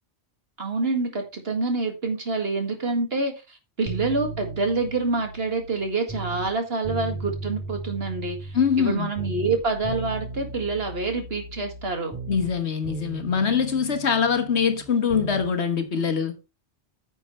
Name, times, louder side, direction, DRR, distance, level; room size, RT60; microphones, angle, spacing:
voice 1, 0.6-12.2, right 3 dB, 65° right, 2.2 m, -27 dB
sound 1, 3.9-6.5 6.8-8.9 9.2-12.6 12.8-15.5 15.8-15.9, right 3 dB, 5° left, 5.2 m, -36 dB
voice 2, 8.5-9.1 12.3-16.4, left 6 dB, 80° left, 1.6 m, -23 dB
9.7 x 7.1 x 3.2 m
omnidirectional pair, 1.1 m